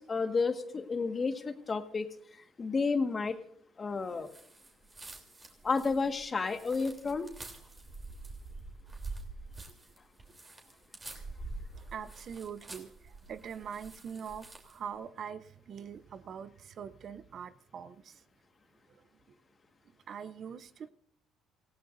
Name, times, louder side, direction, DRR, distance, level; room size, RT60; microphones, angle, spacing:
voice 1, 0.0-3.4 3.8-4.3 5.6-7.3, left 4 dB, 30° left, 1.6 m, -31 dB
sound 1, 4.2-14.8, right 3 dB, 20° right, 3.3 m, -47 dB
voice 2, 11.7-18.2 18.9-19.0 20.1-20.9, right 7 dB, 50° right, 0.6 m, -43 dB
28.0 x 16.0 x 2.6 m
supercardioid pair, 90°, 0 cm